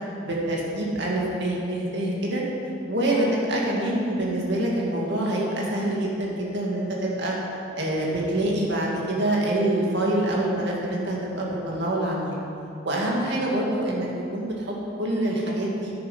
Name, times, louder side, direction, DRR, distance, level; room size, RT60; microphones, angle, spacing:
voice 1, 0.2-2.4 2.9-7.4 7.8-12.4 12.8-15.9, right 1 dB, 60° right, -3 dB, 2.2 m, -26 dB
10.5 x 9.4 x 5.6 m, 2.7 s
head